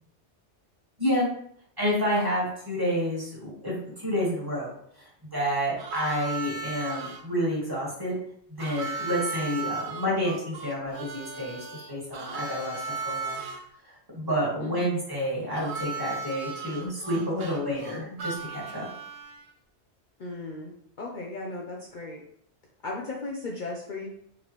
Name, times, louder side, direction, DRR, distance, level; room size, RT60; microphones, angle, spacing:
voice 1, 1.8-8.1 8.5-13.4 13.8-18.9, equal, 20° right, -6 dB, 1.6 m, -29 dB
Harmonica, 5.8-7.2 8.6-13.6 15.5-19.5, right 4 dB, 75° right, 1.0 m, -36 dB
voice 2, 14.6-15.0 20.2-22.2 22.8-24.1, left 2 dB, 50° left, -2 dB, 0.7 m, -36 dB
4.8 x 3.4 x 3.0 m, 0.67 s
omnidirectional pair, 1.1 m